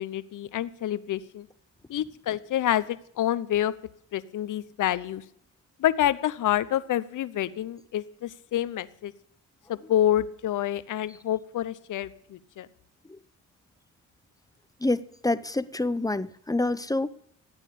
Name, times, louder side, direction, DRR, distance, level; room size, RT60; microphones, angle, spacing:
voice 1, 0.0-1.5 1.9-3.7 4.1-5.2 5.8-9.1 9.7-12.7, left 12 dB, 70° left, 15 dB, 0.9 m, -28 dB
voice 2, 14.8-17.1, left 2 dB, 10° left, 15 dB, 0.7 m, -27 dB
14.5 x 9.0 x 8.7 m, 0.66 s
cardioid pair, 70°, 32 cm